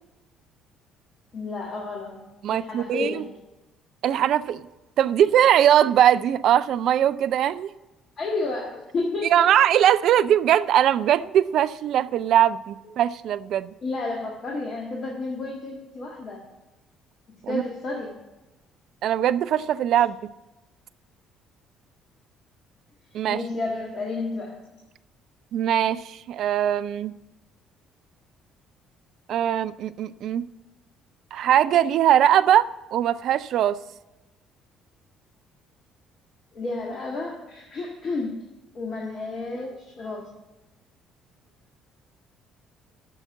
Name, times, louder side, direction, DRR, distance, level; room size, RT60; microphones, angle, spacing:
voice 1, 1.3-3.3 8.2-9.5 13.8-16.4 17.5-18.1 23.3-24.8 36.5-38.5 38.7-40.3, left 3 dB, 45° left, 1.7 m, -31 dB
voice 2, 2.4-3.2 4.0-4.7 5.0-7.7 9.3-13.7 17.4-17.6 19.0-20.2 23.1-23.4 25.5-27.1 29.3-30.5 31.3-33.8, right 10 dB, 55° right, 0.3 m, -21 dB
8.5 x 6.3 x 7.4 m
figure-of-eight pair, 50°, 0 cm